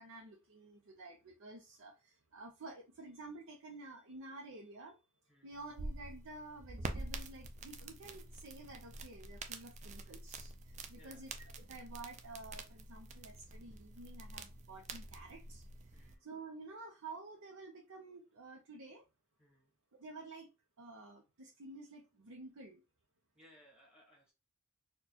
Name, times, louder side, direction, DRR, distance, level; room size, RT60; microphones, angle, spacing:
voice 1, 0.0-5.0 5.4-19.0 19.9-20.5 20.8-22.8, right 2 dB, 90° right, 0.6 m, -51 dB
sound 1, 5.5-16.2, right 2 dB, 35° right, 0.4 m, -47 dB
voice 2, 10.9-11.2 15.9-16.2 19.4-19.7 23.3-24.3, equal, 5° right, 1.2 m, -64 dB
4.2 x 2.2 x 2.8 m
head